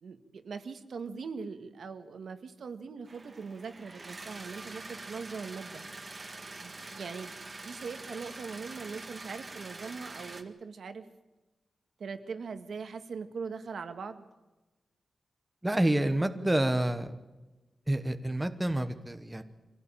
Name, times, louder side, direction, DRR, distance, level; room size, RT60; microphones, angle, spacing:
voice 1, 0.0-5.8 6.6-7.4 7.6-11.1 12.0-14.3, right 5 dB, 65° right, 8 dB, 1.7 m, -41 dB
sound 1, 3.1-10.4, right 3 dB, 25° right, 1.8 m, -45 dB
voice 2, 15.6-17.1 17.9-19.4, right 1 dB, 10° right, 8 dB, 1.1 m, -28 dB
25.0 x 17.0 x 9.0 m, 1.1 s
wide cardioid pair, 170°, 0 cm